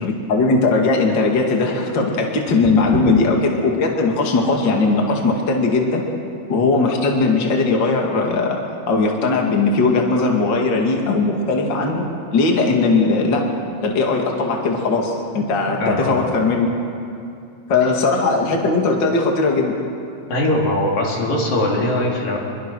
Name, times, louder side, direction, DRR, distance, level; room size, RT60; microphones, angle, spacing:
voice 1, 0.0-6.0 6.5-8.6 8.9-12.1 12.3-13.4 13.8-16.7 17.7-19.7, left 3 dB, 35° left, 1 dB, 2.6 m, -18 dB
voice 2, 15.8-16.2 20.3-22.4, left 1 dB, 85° left, -2 dB, 4.9 m, -20 dB
26.5 x 21.5 x 6.3 m, 2.5 s
omnidirectional pair, 3.8 m